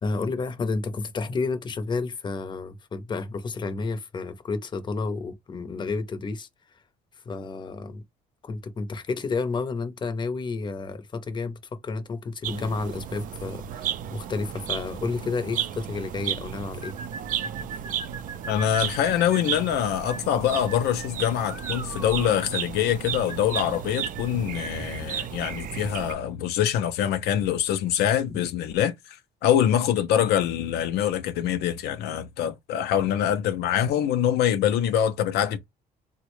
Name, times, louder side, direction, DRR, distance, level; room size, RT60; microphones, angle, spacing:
voice 1, 0.0-6.5 7.2-8.0 8.4-17.0 28.3-28.4, left 4 dB, 25° left, 0.6 m, -31 dB
sound 1, 12.4-26.1, right 9 dB, 55° right, 0.4 m, -34 dB
sound 2, 16.8-24.8, right 4 dB, 20° right, 0.6 m, -40 dB
voice 2, 18.5-29.2 29.4-35.6, left 10 dB, 75° left, 0.4 m, -24 dB
3.6 x 2.1 x 3.0 m
cardioid pair, 110°, 17 cm